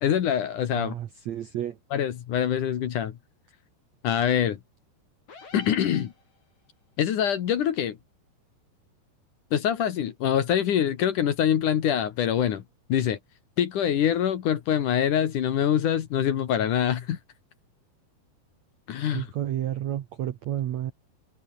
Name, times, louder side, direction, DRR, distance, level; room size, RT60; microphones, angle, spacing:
voice 1, 0.0-0.9 1.9-3.2 4.0-4.6 5.5-6.1 7.0-8.0 9.5-12.6 12.9-13.2 13.6-17.2 18.9-19.3, left 9 dB, 60° left, 2.7 m, -24 dB
voice 2, 0.7-1.8 19.1-20.9, right 11 dB, 70° right, 1.7 m, -31 dB
sound 1, 5.3-6.7, left 4 dB, 45° left, 6.4 m, -49 dB
omnidirectional pair, 4.7 m